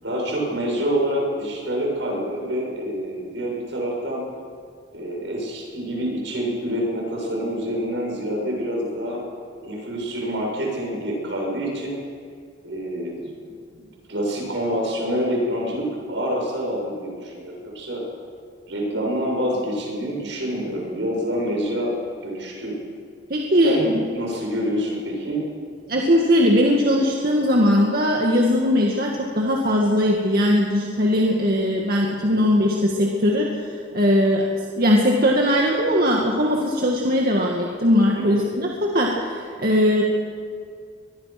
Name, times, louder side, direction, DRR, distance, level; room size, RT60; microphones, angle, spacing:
voice 1, 0.0-4.2 4.9-9.2 9.6-12.0 12.6-13.3 13.7-13.8 14.1-18.0 18.7-22.0 22.2-22.7 23.6-25.4 32.3-32.4 38.1-38.5, equal, 80° right, -1 dB, 7.4 m, -27 dB
voice 2, 23.3-23.9 25.9-34.5 34.8-40.0, equal, 50° right, -1 dB, 2.1 m, -20 dB
23.0 x 21.5 x 6.1 m, 2.1 s
head